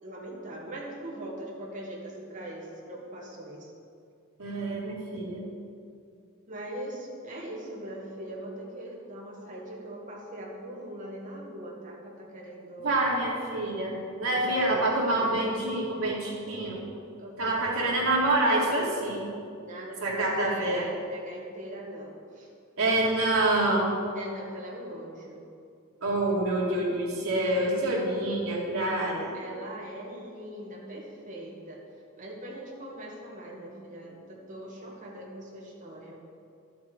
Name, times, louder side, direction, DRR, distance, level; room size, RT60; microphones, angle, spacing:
voice 1, 0.0-3.7 6.5-13.0 14.2-15.4 17.2-18.1 19.6-22.5 24.1-25.4 29.3-31.8 32.2-36.2, right 1 dB, 40° right, -2 dB, 1.8 m, -41 dB
voice 2, 4.4-5.5 12.8-16.8 17.4-19.2 20.0-20.9 22.8-24.0 26.0-29.3, right 2 dB, 85° right, -4 dB, 2.4 m, -27 dB
12.0 x 7.2 x 4.6 m, 2.3 s
head